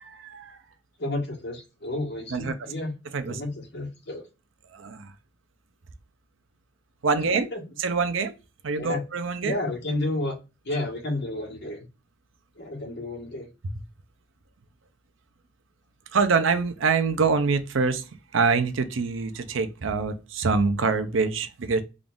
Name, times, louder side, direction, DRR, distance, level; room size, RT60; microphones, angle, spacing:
voice 1, 0.2-0.5 2.3-2.5 3.1-3.4 4.8-5.0 7.0-7.5 7.8-8.3 8.6-9.5 16.1-18.0 18.3-21.8, right 4 dB, 85° right, 0.6 m, -25 dB
voice 2, 1.0-2.9 3.3-4.2 7.3-7.6 8.7-9.0 9.4-10.3 10.6-11.8 12.6-13.5, left 2 dB, 60° left, 1.5 m, -31 dB
3.7 x 2.4 x 3.5 m
head